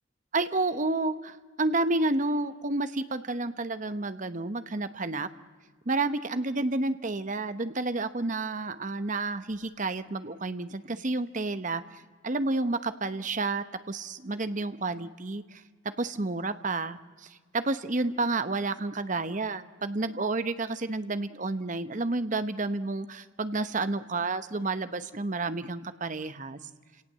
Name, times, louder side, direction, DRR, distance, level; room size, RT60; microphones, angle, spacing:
voice 1, 0.3-5.3 5.9-15.6 16.0-26.6, right 2 dB, 40° right, 11 dB, 0.9 m, -30 dB
29.0 x 18.0 x 7.5 m, 1.4 s
head